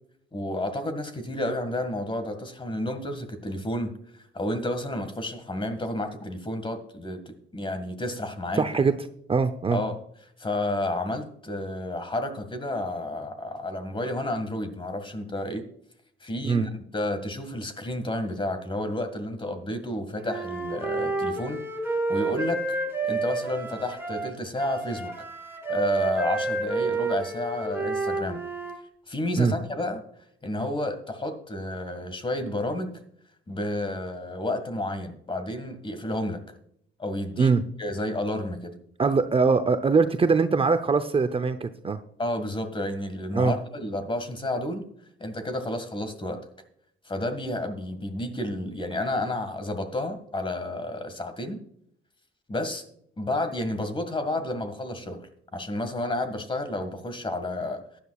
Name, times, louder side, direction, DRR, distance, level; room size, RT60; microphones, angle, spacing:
voice 1, 0.3-3.9 4.3-8.7 9.7-10.0 10.4-15.6 16.2-21.6 21.9-22.8 23.1-25.1 25.7-28.4 29.1-30.0 30.4-33.0 33.5-36.4 37.0-38.7 42.2-44.9 45.2-46.5 47.1-51.6 52.5-52.8 53.2-57.8, left 1 dB, 25° left, 9 dB, 1.9 m, -31 dB
voice 2, 8.6-8.9 9.3-9.8 16.4-16.6 29.4-29.5 37.4-37.6 39.0-42.0 43.3-43.5, right 4 dB, 30° right, 10 dB, 0.7 m, -22 dB
Wind instrument woodwind instrument, 20.3-28.8, right 3 dB, 10° right, 3.0 m, -29 dB
15.0 x 10.5 x 2.4 m, 0.68 s
cardioid pair, 90°, 20 cm